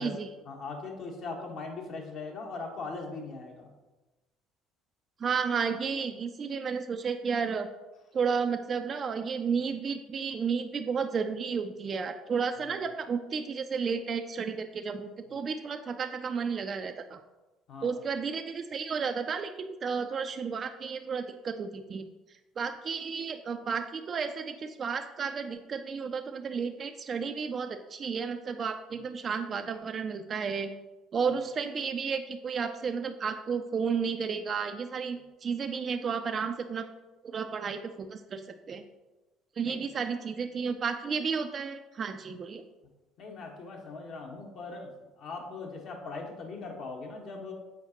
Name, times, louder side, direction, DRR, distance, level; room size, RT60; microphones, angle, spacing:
voice 1, 0.4-3.7 12.6-12.8 17.7-18.0 28.9-29.0 39.6-39.8 43.2-44.9 45.2-47.5, left 3 dB, 55° left, 1 dB, 1.3 m, -40 dB
voice 2, 5.2-7.7 8.1-17.2 17.8-22.1 22.6-30.7 31.1-36.9 37.2-38.8 39.6-42.6, right 6 dB, 40° right, 6 dB, 0.4 m, -32 dB
7.2 x 4.8 x 2.9 m, 1.1 s
hypercardioid pair, 60°, 0 cm